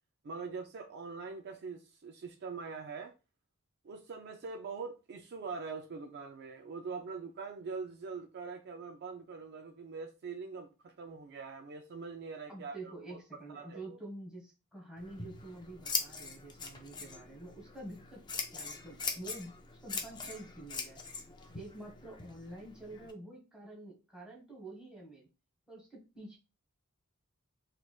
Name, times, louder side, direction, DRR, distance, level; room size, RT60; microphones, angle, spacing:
voice 1, 0.2-3.1 3.8-13.2 13.5-14.0, right 4 dB, 50° right, 0.4 m, -43 dB
voice 2, 12.5-18.2 18.5-19.5 19.8-21.0 21.5-25.3 25.7-26.4, right 2 dB, 5° right, 1.4 m, -48 dB
Scissors, 15.0-23.1, left 5 dB, 20° left, 0.4 m, -42 dB
3.3 x 3.0 x 2.3 m
head